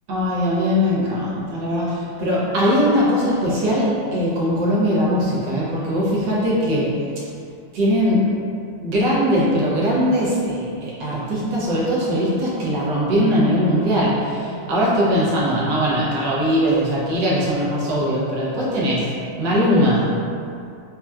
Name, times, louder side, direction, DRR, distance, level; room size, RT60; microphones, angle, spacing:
voice 1, 0.1-7.0 7.7-8.3 8.8-19.1 19.4-20.1, equal, 65° right, -6 dB, 1.4 m, -20 dB
5.3 x 2.3 x 2.3 m, 2.5 s
omnidirectional pair, 2.2 m